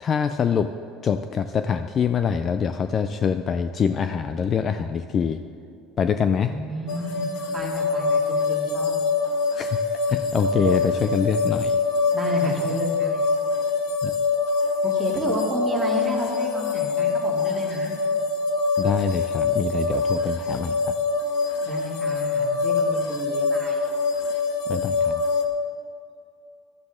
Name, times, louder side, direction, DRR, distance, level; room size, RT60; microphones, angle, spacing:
voice 1, 0.0-0.7 1.0-5.4 6.0-6.5 9.6-9.8 10.1-11.8 14.0-14.1 18.8-20.7 24.7-25.2, left 7 dB, 25° left, 9 dB, 0.3 m, -24 dB
voice 2, 6.4-8.9 12.1-13.2 14.8-17.9 21.7-23.8, equal, 5° right, -4 dB, 2.4 m, -31 dB
sound 1, 6.9-25.4, left 4 dB, 65° left, 1.3 m, -24 dB
16.0 x 12.5 x 3.7 m, 2.6 s
cardioid pair, 165°, 0 cm